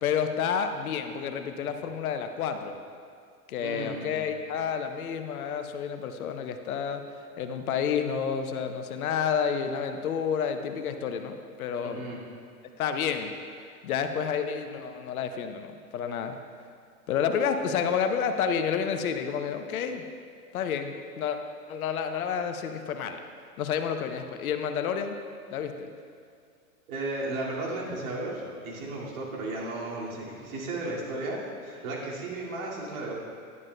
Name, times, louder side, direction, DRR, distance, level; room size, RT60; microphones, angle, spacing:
voice 1, 0.0-2.8 3.5-7.0 7.4-11.3 11.6-12.0 12.8-13.3 13.8-16.4 17.1-20.0 20.5-21.4 21.7-23.2 23.6-25.1 25.5-25.9, left 7 dB, 70° left, 7 dB, 0.8 m, -30 dB
voice 2, 3.6-4.2 11.8-12.2 26.9-33.1, right 2 dB, 65° right, -4 dB, 2.3 m, -34 dB
10.5 x 10.5 x 2.2 m, 2.2 s
hypercardioid pair, 100°, 45 cm